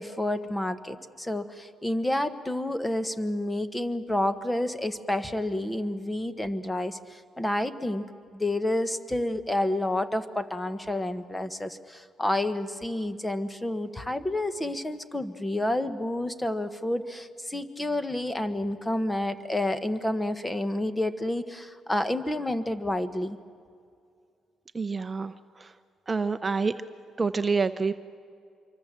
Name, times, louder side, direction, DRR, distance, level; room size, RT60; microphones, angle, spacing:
voice 1, 0.0-8.0 8.3-23.4, left 1 dB, 10° left, 11 dB, 1.3 m, -29 dB
voice 2, 24.7-25.3 25.6-25.7 26.1-26.8 27.2-27.9, right 4 dB, 25° right, 10 dB, 0.7 m, -27 dB
26.0 x 24.0 x 7.5 m, 2.3 s
cardioid pair, 90°, 0 cm